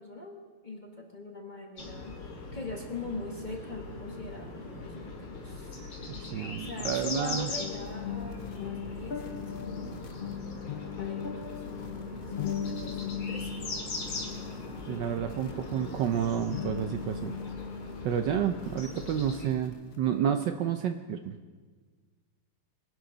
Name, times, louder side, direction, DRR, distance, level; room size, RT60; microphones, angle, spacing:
voice 1, 0.0-2.1 2.5-5.8 6.5-10.0 10.9-11.6 12.0-13.6 14.9-15.2, left 2 dB, 25° left, 1 dB, 1.2 m, -42 dB
sound 1, 1.8-19.5, left 3 dB, 85° left, 2.8 m, -40 dB
voice 2, 6.2-7.5 14.9-17.3 18.0-21.4, right 9 dB, 70° right, 8 dB, 1.1 m, -30 dB
sound 2, 7.6-20.1, left 7 dB, 60° left, 0.5 m, -39 dB
23.5 x 11.5 x 3.9 m, 1.5 s
omnidirectional pair, 2.3 m